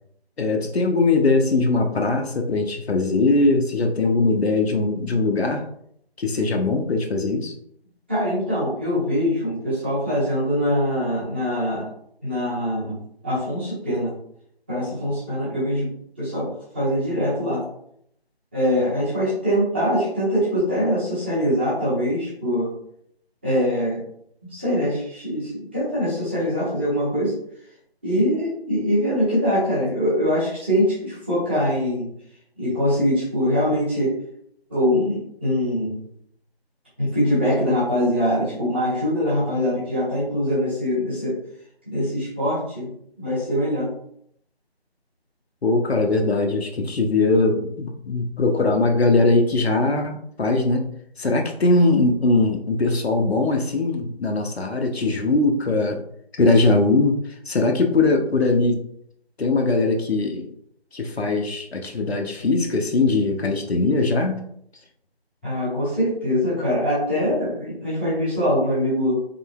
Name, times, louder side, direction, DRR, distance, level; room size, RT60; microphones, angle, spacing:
voice 1, 0.4-5.6 6.2-7.5 45.6-50.9 51.2-56.0 56.4-57.2 57.5-58.8 59.4-60.5 60.9-64.4, left 3 dB, 75° left, 3 dB, 0.7 m, -20 dB
voice 2, 8.1-11.9 12.2-13.0 13.2-14.1 14.7-15.9 16.2-17.6 18.5-22.7 23.4-24.0 24.5-27.3 28.0-32.1 32.6-34.2 34.7-36.0 37.0-41.4 41.9-42.9 43.2-43.9 65.4-69.1, equal, 10° right, -11 dB, 1.0 m, -23 dB
3.8 x 3.8 x 2.2 m, 0.70 s
figure-of-eight pair, 165°, 32 cm